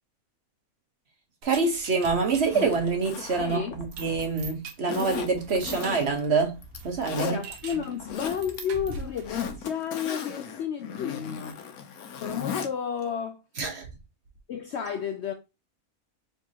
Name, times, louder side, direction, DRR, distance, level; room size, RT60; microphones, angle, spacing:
voice 1, 1.4-6.6 6.8-7.4 13.6-13.9, right 4 dB, 50° right, 1.2 m, -26 dB
sound 1, 1.4-9.7, right 4 dB, 70° right, 1.3 m, -43 dB
Zipper (clothing), 2.3-4.3 4.9-6.3 6.6-7.4 7.9-8.6 8.9-12.7 13.0-13.1, left 8 dB, 85° left, 1.2 m, -36 dB
voice 2, 3.4-3.8 7.2-11.6 12.1-13.4 14.5-15.3, left 8 dB, 65° left, 0.7 m, -32 dB
4.6 x 3.5 x 2.8 m
omnidirectional pair, 1.5 m